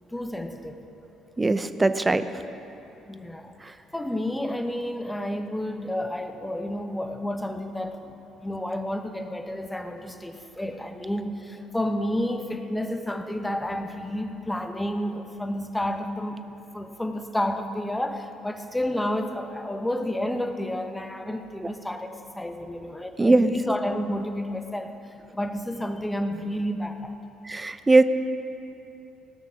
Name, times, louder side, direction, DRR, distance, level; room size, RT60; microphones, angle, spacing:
voice 1, 0.1-0.9 3.1-25.0 25.3-27.2, left 1 dB, 10° left, 6 dB, 1.2 m, -30 dB
voice 2, 1.4-2.2 23.2-23.5 27.5-28.0, right 2 dB, 20° right, 11 dB, 0.7 m, -20 dB
18.0 x 6.4 x 7.2 m, 2.9 s
supercardioid pair, 60°, 0 cm